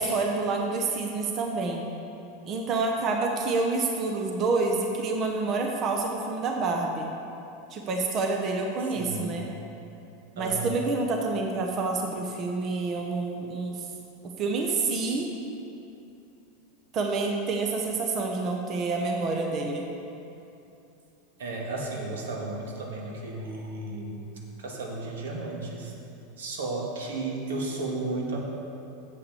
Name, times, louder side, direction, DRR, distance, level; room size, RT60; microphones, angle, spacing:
voice 1, 0.0-1.9 2.5-7.1 7.7-9.4 10.4-13.8 14.4-15.3 16.9-19.9, right 3 dB, 35° right, 2 dB, 0.9 m, -28 dB
voice 2, 8.9-9.4 10.4-10.7 21.4-24.2 24.6-25.9 26.4-28.4, right 2 dB, 90° right, -1 dB, 1.7 m, -33 dB
7.8 x 5.8 x 6.9 m, 2.8 s
supercardioid pair, 125°, 0 cm